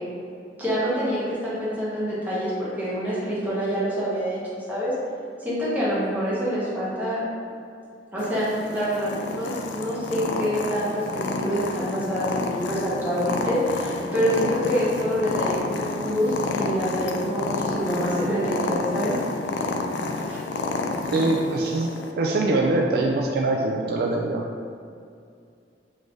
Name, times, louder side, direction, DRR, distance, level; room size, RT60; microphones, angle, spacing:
voice 1, 0.6-4.9 5.4-7.2 8.1-19.1 20.3-20.4, equal, 10° right, -10 dB, 1.2 m, -26 dB
Purr, 8.2-22.1, left 3 dB, 85° left, 0.4 m, -30 dB
voice 2, 21.1-21.9 22.2-24.4, right 2 dB, 60° right, 0 dB, 0.3 m, -23 dB
3.7 x 3.2 x 3.8 m, 2.3 s
head